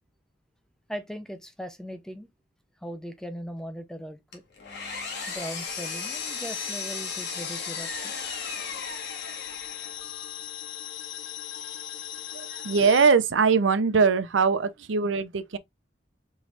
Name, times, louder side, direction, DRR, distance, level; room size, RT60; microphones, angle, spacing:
voice 1, 0.9-2.3 2.8-4.4 5.3-8.1, equal, 5° left, 0.4 m, -39 dB
Engine, 4.3-10.0, left 4 dB, 55° left, 1.5 m, -36 dB
sound 1, 5.7-13.1, left 11 dB, 85° left, 0.5 m, -39 dB
voice 2, 12.3-15.6, right 5 dB, 80° right, 0.5 m, -22 dB
4.8 x 3.1 x 2.6 m
head